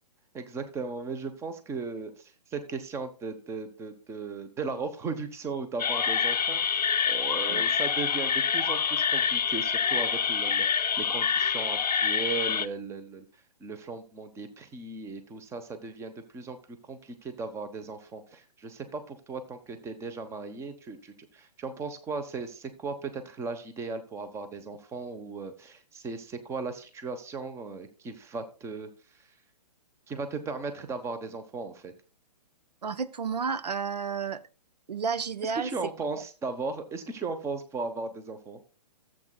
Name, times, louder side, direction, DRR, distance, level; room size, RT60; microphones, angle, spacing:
voice 1, 0.3-13.2 13.6-16.6 16.8-28.9 29.2-29.3 30.1-31.9 35.4-38.6, right 4 dB, 15° right, 1.0 m, -37 dB
sound 1, 5.8-12.7, left 7 dB, 85° left, 0.5 m, -26 dB
voice 2, 32.8-34.4 34.9-35.7, right 6 dB, 85° right, 0.7 m, -31 dB
14.5 x 7.8 x 2.3 m
hypercardioid pair, 130°, 20 cm